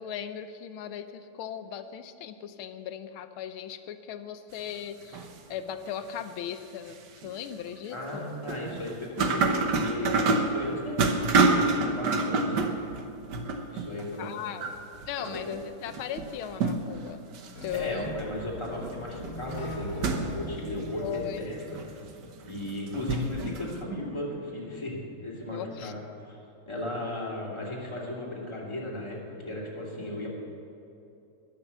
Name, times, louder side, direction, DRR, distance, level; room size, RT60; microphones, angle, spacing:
voice 1, 0.0-7.0 7.2-8.3 14.2-14.6 15.1-17.2 17.6-18.1 21.0-21.4 25.5-25.9, left 9 dB, 75° left, 10 dB, 1.5 m, -37 dB
sound 1, 5.0-5.5 6.1-6.2 6.9-7.3 8.0-14.1 14.4-15.6 15.9-17.0 17.3-23.8, right 3 dB, 55° right, 1.5 m, -28 dB
voice 2, 7.9-12.6 13.7-14.5 15.2-15.5 17.7-21.6 21.9-22.0 22.4-26.4 26.6-30.3, left 1 dB, 15° left, -4 dB, 2.7 m, -36 dB
sound 2, 17.6-22.5, equal, 55° left, 2.3 m, -41 dB
20.5 x 6.9 x 7.1 m, 2.8 s
omnidirectional pair, 2.4 m